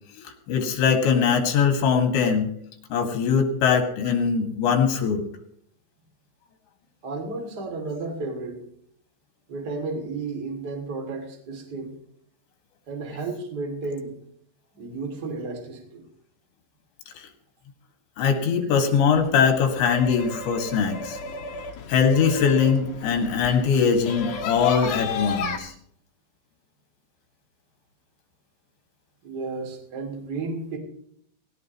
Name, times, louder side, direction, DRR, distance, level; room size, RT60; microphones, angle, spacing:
voice 1, 0.5-2.5 2.9-5.2 17.1-17.2 18.2-21.2 21.9-25.7, left 6 dB, 75° left, 4 dB, 4.4 m, -21 dB
voice 2, 7.0-8.6 9.5-11.9 12.9-14.1 14.7-16.1 29.2-30.8, right 3 dB, 25° right, 2 dB, 2.7 m, -32 dB
sound 1, 19.1-25.6, left 4 dB, 55° left, 2.5 m, -33 dB
18.5 x 17.0 x 3.1 m, 0.67 s
omnidirectional pair, 5.2 m